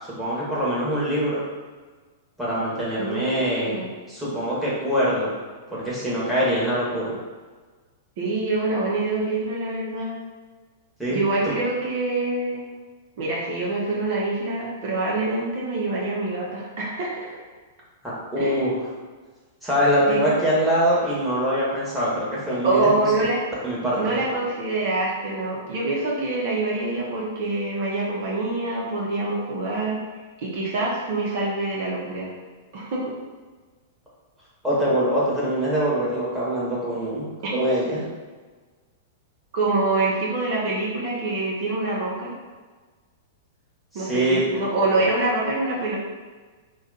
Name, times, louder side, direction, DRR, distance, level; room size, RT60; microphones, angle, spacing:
voice 1, 0.0-1.4 2.4-3.8 4.1-5.3 5.7-7.1 11.0-11.2 18.0-18.8 19.6-23.2 23.6-24.2 34.6-38.1 43.9-44.6 45.0-45.1, equal, ahead, -9 dB, 1.2 m, -24 dB
voice 2, 3.0-3.9 8.2-10.1 11.1-12.6 13.2-17.3 18.4-18.7 20.1-20.3 22.6-23.4 24.0-30.0 30.4-32.3 32.7-33.1 39.5-42.3 43.9-46.0, right 2 dB, 55° right, -5 dB, 0.8 m, -25 dB
2.4 x 2.3 x 4.0 m, 1.4 s
figure-of-eight pair, 105°, 0 cm